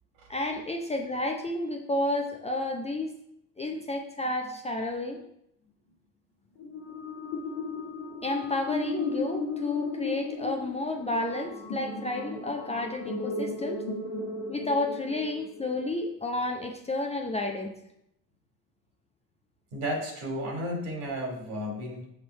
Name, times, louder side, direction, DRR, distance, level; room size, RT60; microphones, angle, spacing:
voice 1, 0.3-3.1 3.6-5.2 8.2-13.8 14.5-17.7, left 2 dB, 15° left, 2 dB, 0.7 m, -31 dB
sound 1, 6.6-16.0, left 3 dB, 55° left, 1.4 m, -35 dB
voice 2, 19.7-22.0, equal, 60° right, 0 dB, 2.7 m, -33 dB
7.4 x 4.3 x 4.6 m, 0.77 s
figure-of-eight pair, 60°, 49 cm